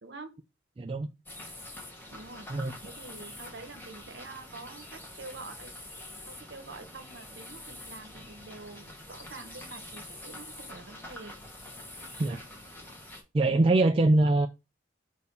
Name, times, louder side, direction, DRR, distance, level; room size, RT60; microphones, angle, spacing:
voice 1, 0.0-0.4 2.1-2.5 2.8-5.7 6.3-11.3 12.2-12.4, right 3 dB, 60° right, 0.9 m, -46 dB
voice 2, 0.8-1.1 2.5-2.7 12.2-12.4 13.3-14.5, right 2 dB, 25° right, 0.3 m, -23 dB
sound 1, 1.3-13.2, left 1 dB, 10° left, 1.2 m, -46 dB
6.3 x 2.7 x 5.4 m
head